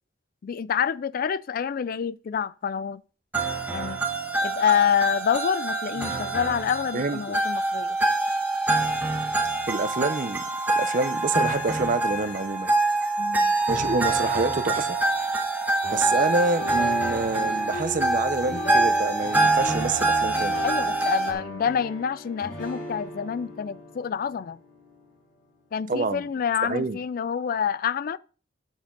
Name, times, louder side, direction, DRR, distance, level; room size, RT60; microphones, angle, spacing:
voice 1, 0.4-3.0 3.7-4.0 4.4-8.0 13.2-13.5 20.6-24.6 25.7-28.2, left 7 dB, 50° left, 0.3 m, -27 dB
sound 1, 3.3-21.3, right 2 dB, 10° right, 1.5 m, -25 dB
voice 2, 9.7-10.4 10.7-12.7 13.7-14.9 15.9-20.6 25.9-26.2 26.6-27.0, right 3 dB, 45° right, 0.7 m, -27 dB
sound 2, 15.8-25.8, left 1 dB, 85° left, 4.1 m, -38 dB
9.5 x 6.7 x 3.8 m
head